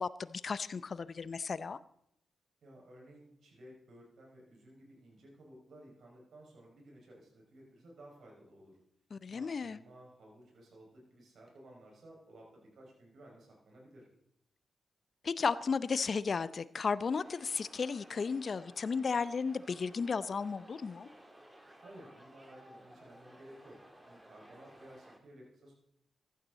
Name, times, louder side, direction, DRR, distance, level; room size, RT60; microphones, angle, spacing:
voice 1, 0.0-1.8 9.1-9.8 15.2-21.1, left 5 dB, 55° left, 16 dB, 0.6 m, -34 dB
voice 2, 2.6-8.8 9.3-14.1 21.8-23.8 24.0-25.7, right 1 dB, 70° right, -1 dB, 5.7 m, -56 dB
sound 1, 17.2-25.2, right 1 dB, 15° right, 3.1 m, -57 dB
15.5 x 12.0 x 4.0 m, 0.74 s
supercardioid pair, 40°, 0 cm